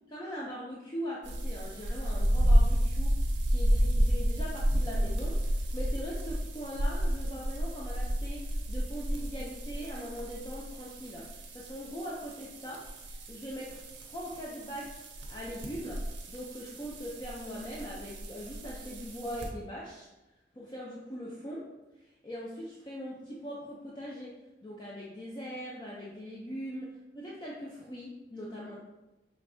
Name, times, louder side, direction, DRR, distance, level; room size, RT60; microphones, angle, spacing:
voice 1, 0.1-11.3 11.5-15.0 15.3-20.1 20.5-21.7 22.0-24.4 24.6-28.8, equal, 25° left, -5 dB, 0.5 m, -41 dB
sound 1, 1.2-19.5, equal, 80° right, 0.7 m, -31 dB
5.1 x 3.3 x 2.6 m, 1.0 s
head